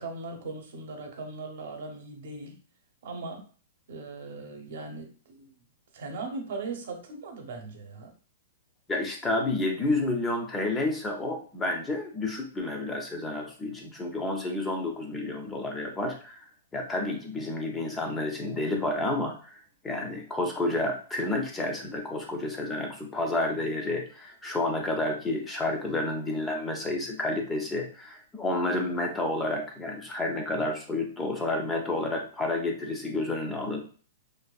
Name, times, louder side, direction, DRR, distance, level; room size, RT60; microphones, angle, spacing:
voice 1, 0.0-2.6 3.0-3.4 3.9-5.6 5.9-8.1, right 3 dB, 65° right, 3 dB, 0.7 m, -39 dB
voice 2, 8.9-16.4 16.7-19.6 19.8-33.8, left 2 dB, 10° left, 2 dB, 0.4 m, -30 dB
2.5 x 2.3 x 2.2 m, 0.40 s
hypercardioid pair, 160°, 0 cm